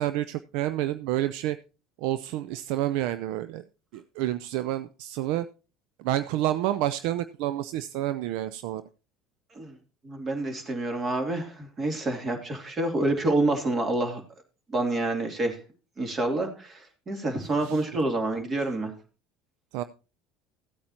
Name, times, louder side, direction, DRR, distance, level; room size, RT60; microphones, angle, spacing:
voice 1, 0.0-1.6 2.0-3.6 3.9-5.5 6.0-8.8 17.6-17.8 19.7-19.8, right 13 dB, 70° right, 13 dB, 0.4 m, -29 dB
voice 2, 10.0-14.2 14.7-15.6 16.0-18.9, right 2 dB, 35° right, 5 dB, 2.7 m, -28 dB
15.5 x 8.6 x 2.8 m, 0.32 s
hypercardioid pair, 75°, 0 cm